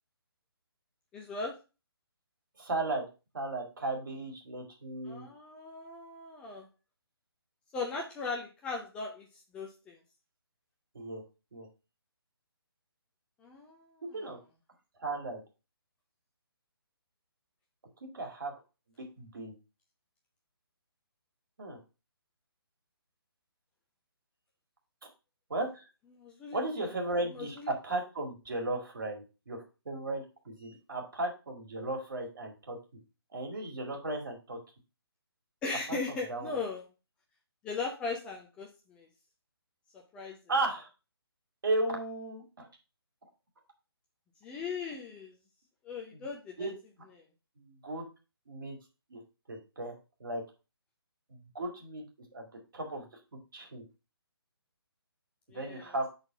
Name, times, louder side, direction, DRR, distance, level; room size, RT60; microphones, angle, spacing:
voice 1, 1.1-1.5 5.1-6.7 7.7-9.3 9.5-10.0 13.4-13.9 26.1-26.9 27.3-27.7 35.6-36.8 37.6-39.1 39.9-40.4 44.4-45.4 45.8-46.7 55.5-55.9, left 4 dB, 10° left, 0 dB, 0.5 m, -38 dB
voice 2, 2.6-3.1 3.3-5.3 10.9-11.2 11.5-11.7 14.1-14.4 15.0-15.4 18.0-18.5 19.0-19.6 21.6-21.8 25.5-25.8 26.5-32.8 33.3-34.6 35.7-36.0 36.3-36.6 40.5-40.9 41.6-42.7 46.1-46.3 46.6-46.7 47.6-48.1 48.5-48.8 49.1-49.2 49.5-50.4 51.3-52.1 52.3-52.5 52.7-53.1 53.5-53.9 55.5-56.1, right 2 dB, 55° right, 2 dB, 2.3 m, -35 dB
5.6 x 4.0 x 5.4 m, 0.31 s
figure-of-eight pair, 145°, 13 cm